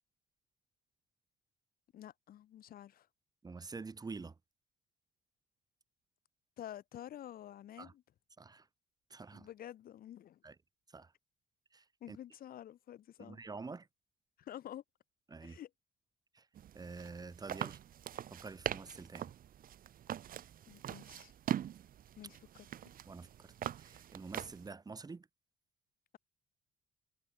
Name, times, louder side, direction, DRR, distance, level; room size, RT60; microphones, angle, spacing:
voice 1, 1.9-3.1 6.6-8.0 9.3-10.4 12.0-13.4 14.4-14.8 15.4-15.7 20.7-21.3 22.2-22.4, left 11 dB, 60° left, 3.0 m, -49 dB
voice 2, 3.4-4.4 7.8-7.9 8.4-8.7 9.1-9.5 10.4-10.6 10.9-11.1 11.7-12.2 13.2-13.9 15.3-15.6 16.3-16.5 16.7-17.8 18.3-19.3 23.1-25.3, right 4 dB, 20° right, 3.1 m, -47 dB
sound 1, 16.6-24.7, right 10 dB, 55° right, 4.5 m, -42 dB
cardioid pair, 110°, 17 cm